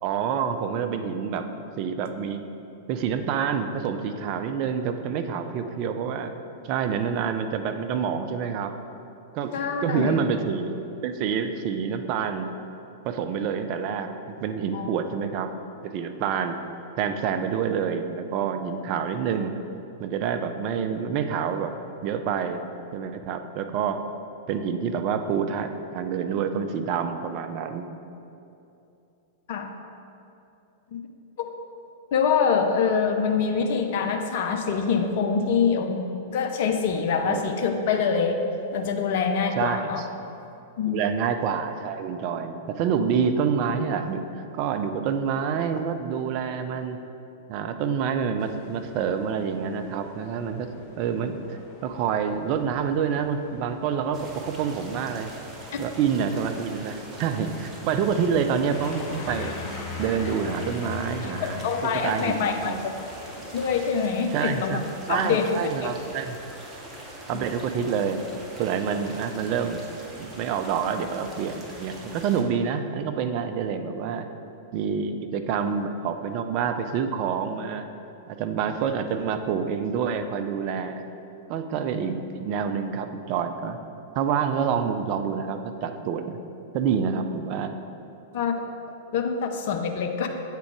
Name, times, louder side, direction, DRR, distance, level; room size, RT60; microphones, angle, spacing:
voice 1, 0.0-1.4 1.8-2.4 2.9-6.3 6.6-8.7 9.3-9.5 9.8-10.8 11.0-12.5 13.0-15.5 15.8-16.6 17.0-19.5 20.0-21.7 22.0-22.7 22.9-24.0 24.5-27.9 37.2-37.4 39.6-40.1 40.9-47.0 47.5-50.7 51.0-55.3 55.8-59.5 60.0-61.6 61.9-62.8 64.3-64.8 65.1-66.4 67.3-68.2 68.6-69.9 70.2-74.3 74.7-77.9 78.3-81.1 81.5-83.8 84.1-86.4 86.7-87.8, right 7 dB, 45° right, 7 dB, 0.5 m, -27 dB
voice 2, 9.5-10.3 14.7-14.9 29.5-29.7 30.9-31.0 32.1-38.4 38.7-40.0 40.8-41.0 61.2-62.9 63.5-64.8 65.1-66.0 88.3-88.5 89.1-90.3, left 6 dB, 55° left, 4 dB, 0.5 m, -25 dB
sound 1, 48.4-63.9, left 4 dB, 35° left, 1.1 m, -42 dB
sound 2, 54.1-72.4, right 1 dB, 20° right, 1.1 m, -43 dB
8.2 x 3.7 x 4.7 m, 2.8 s
figure-of-eight pair, 95°, 0 cm